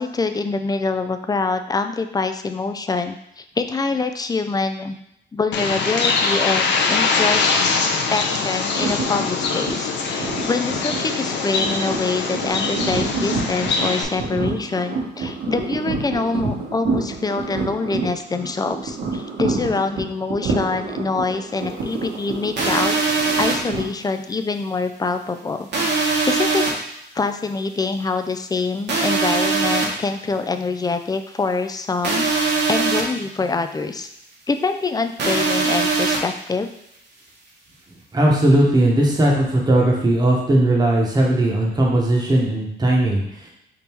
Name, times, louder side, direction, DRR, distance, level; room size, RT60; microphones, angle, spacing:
voice 1, 0.0-5.0 5.3-23.0 23.4-25.7 26.3-26.7 27.1-34.1 34.5-36.7, left 4 dB, 20° left, 8 dB, 0.3 m, -25 dB
Bird, 5.5-14.0, left 4 dB, 65° left, 0.6 m, -22 dB
sound 1, 8.7-23.8, right 4 dB, 75° right, 1.4 m, -28 dB
sound 2, 22.6-23.5 25.7-26.7 28.9-29.9 32.0-33.0 35.2-36.2, right 4 dB, 60° right, 1.2 m, -20 dB
voice 2, 38.1-43.2, right 1 dB, 20° right, -2 dB, 1.1 m, -17 dB
3.6 x 2.7 x 4.4 m, 0.80 s
cardioid pair, 90°, 20 cm